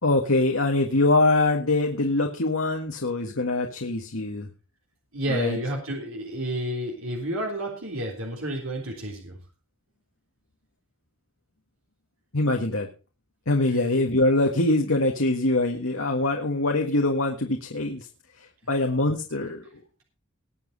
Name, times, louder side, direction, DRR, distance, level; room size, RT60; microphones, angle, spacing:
voice 1, 0.0-4.5 5.3-5.6 12.3-12.9 13.5-18.1 18.7-19.6, left 2 dB, 75° left, 2 dB, 1.7 m, -23 dB
voice 2, 5.1-9.4 13.7-13.9, right 1 dB, 80° right, 1 dB, 3.5 m, -31 dB
20.5 x 7.5 x 4.1 m, 0.32 s
head